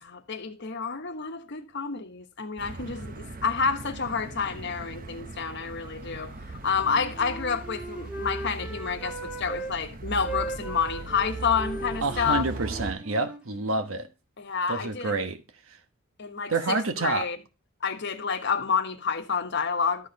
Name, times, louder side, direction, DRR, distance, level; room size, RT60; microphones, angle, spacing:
voice 1, 0.0-12.4 14.4-15.1 16.2-17.4 17.8-20.1, left 6 dB, 55° left, 1.3 m, -29 dB
sound 1, 2.6-12.9, right 3 dB, 45° right, 0.8 m, -39 dB
Wind instrument woodwind instrument, 6.8-9.7 10.2-14.1, right 2 dB, 5° right, 1.5 m, -38 dB
voice 2, 12.0-14.1 14.7-15.4 15.7-15.8 16.5-17.3, right 3 dB, 75° right, 1.2 m, -28 dB
12.5 x 4.5 x 5.2 m
head